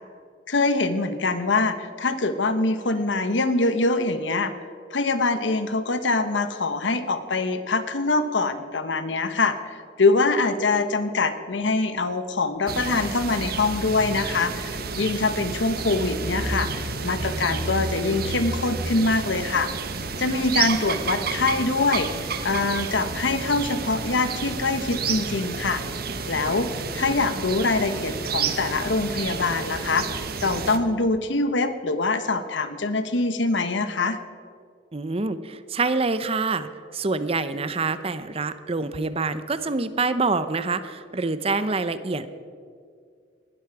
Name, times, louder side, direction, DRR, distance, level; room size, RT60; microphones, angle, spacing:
voice 1, 0.5-4.5 4.9-19.7 20.2-25.8 26.3-30.1 30.4-34.2, left 3 dB, 80° left, 11 dB, 1.1 m, -24 dB
sound 1, 12.7-30.8, right 4 dB, 55° right, 1.1 m, -30 dB
voice 2, 34.9-42.4, right 3 dB, 30° right, 12 dB, 0.7 m, -26 dB
19.5 x 12.5 x 4.7 m, 2.3 s
head